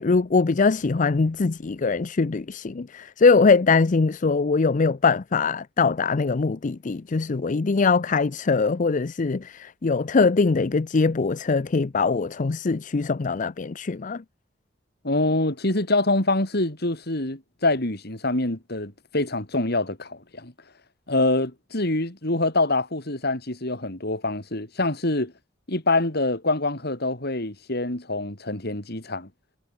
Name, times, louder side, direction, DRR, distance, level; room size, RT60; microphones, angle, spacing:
voice 1, 0.0-14.2, left 4 dB, 45° left, 0.5 m, -22 dB
voice 2, 15.0-20.5 21.1-25.3 25.7-29.3, left 2 dB, 60° left, 4.1 m, -25 dB
head